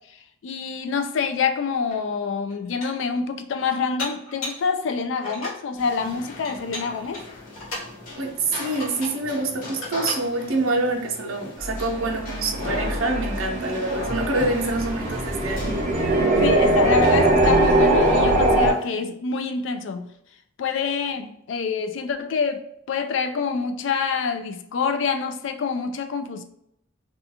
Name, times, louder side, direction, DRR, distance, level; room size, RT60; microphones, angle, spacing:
voice 1, 0.1-7.2 16.4-20.1 20.6-26.4, left 5 dB, 65° left, 0.3 m, -26 dB
Dishes pots and pans, 1.9-2.0 2.5-3.1 4.0-4.7 5.1-5.6 6.4-7.9 8.6-9.2 9.6-10.3, left 1 dB, 90° left, 1.2 m, -36 dB
sound 1, 5.8-18.9, left 2 dB, 45° left, 1.0 m, -38 dB
voice 2, 8.2-15.9, right 2 dB, 80° right, 0.6 m, -26 dB
sound 2, 11.6-18.7, right 2 dB, 35° right, 0.5 m, -21 dB
2.4 x 2.3 x 2.7 m
head